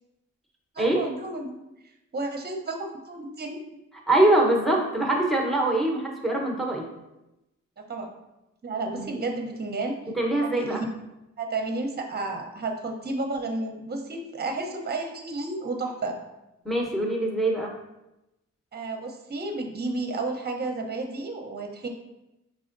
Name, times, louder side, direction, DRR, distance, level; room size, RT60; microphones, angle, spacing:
voice 1, 0.7-1.5 2.1-3.6 7.8-8.1 8.6-10.0 10.4-10.9 11.4-16.2 18.7-21.9, right 2 dB, 30° right, 3 dB, 0.8 m, -32 dB
voice 2, 4.1-6.9 8.9-9.1 10.1-10.8 16.6-17.7, right 1 dB, ahead, 0 dB, 1.0 m, -23 dB
4.8 x 3.5 x 2.6 m, 0.94 s
cardioid pair, 60°, 32 cm